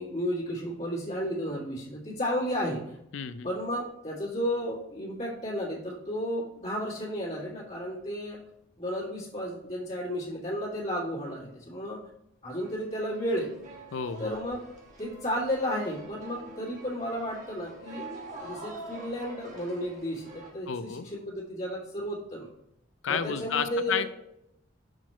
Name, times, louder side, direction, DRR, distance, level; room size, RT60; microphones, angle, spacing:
voice 1, 0.0-3.0 3.4-8.4 8.8-12.0 12.4-13.5 14.2-14.6 15.0-18.1 18.4-22.5 23.1-24.1, equal, 35° left, -10 dB, 1.9 m, -33 dB
voice 2, 3.1-3.5 13.9-14.4 20.7-21.1 23.0-24.1, left 7 dB, 75° left, 12 dB, 0.4 m, -31 dB
sound 1, 12.5-20.5, right 2 dB, 35° right, 1.3 m, -46 dB
6.2 x 4.2 x 4.4 m, 0.78 s
head